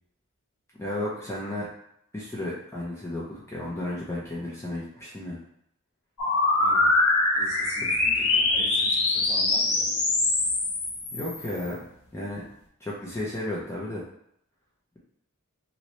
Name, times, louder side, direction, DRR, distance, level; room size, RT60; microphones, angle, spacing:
voice 1, 0.8-1.7 2.1-5.4 11.1-11.8 12.1-12.4 12.8-14.0, left 1 dB, 10° left, -6 dB, 0.6 m, -33 dB
sound 1, 6.2-11.7, left 2 dB, 70° left, 0.8 m, -24 dB
voice 2, 6.6-7.0 7.3-10.2, equal, 30° right, -7 dB, 1.3 m, -43 dB
3.1 x 2.7 x 2.9 m, 0.72 s
head